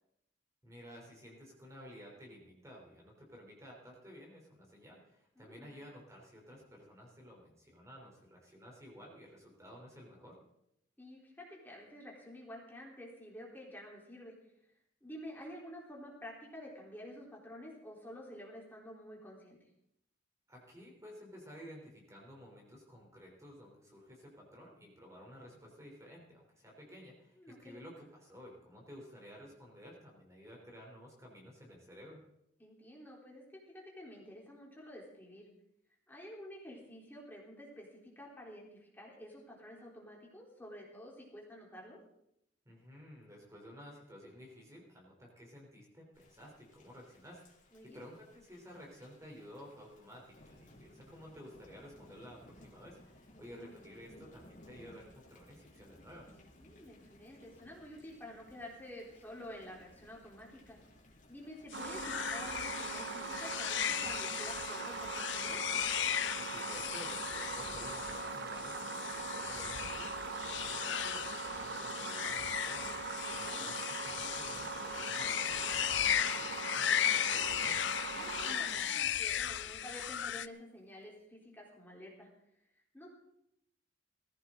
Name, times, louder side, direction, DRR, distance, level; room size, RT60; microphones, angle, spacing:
voice 1, 0.6-10.4 20.5-32.2 42.6-56.3 66.4-77.8, equal, 15° right, -1 dB, 3.4 m, -53 dB
voice 2, 5.4-5.8 11.0-14.3 15.0-19.6 27.4-27.8 32.6-35.5 36.1-42.0 47.7-48.0 53.3-53.7 56.6-60.8 61.3-65.6 73.2-73.7 78.2-82.3 82.9-83.1, left 1 dB, 10° left, -3 dB, 3.6 m, -50 dB
Thunder / Rain, 46.1-65.3, left 1 dB, 45° left, 3.2 m, -61 dB
sound 1, 61.7-80.5, left 10 dB, 70° left, 0.5 m, -36 dB
sound 2, 61.7-79.7, right 4 dB, 60° right, 0.8 m, -41 dB
19.5 x 15.0 x 3.8 m, 0.78 s
head